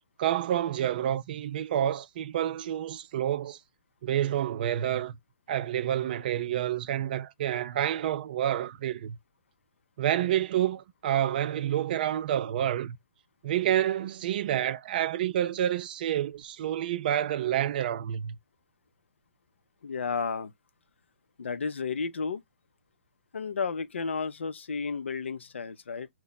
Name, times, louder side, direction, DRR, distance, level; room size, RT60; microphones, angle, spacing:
voice 1, 0.2-3.6 4.0-5.2 5.5-9.2 10.0-13.0 13.4-18.4, right 11 dB, 50° right, 0.4 m, -28 dB
voice 2, 19.8-20.5 21.4-22.4 23.3-26.1, left 5 dB, 80° left, 0.5 m, -32 dB
2.8 x 2.1 x 4.0 m
hypercardioid pair, 135°, 6 cm